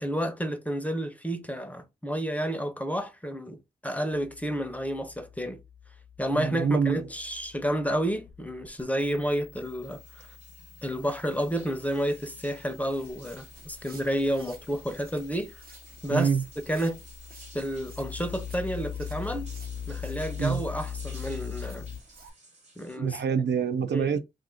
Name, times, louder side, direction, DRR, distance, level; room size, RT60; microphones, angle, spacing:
voice 1, 0.0-3.6 3.8-5.6 6.2-10.3 10.8-15.6 16.0-16.3 16.7-17.0 17.5-19.5 19.9-21.9 22.8-23.2 23.9-24.2, equal, 10° left, 0.6 m, -30 dB
sound 1, 4.1-22.0, left 8 dB, 55° left, 0.5 m, -42 dB
voice 2, 6.3-7.0 16.1-16.4 20.4-20.6 23.0-24.2, right 6 dB, 75° right, 0.5 m, -26 dB
sound 2, 9.5-23.0, right 2 dB, 40° right, 1.2 m, -55 dB
Walk footsteps, 12.9-22.3, right 3 dB, 55° right, 0.9 m, -54 dB
2.5 x 2.4 x 3.6 m
cardioid pair, 70°, 18 cm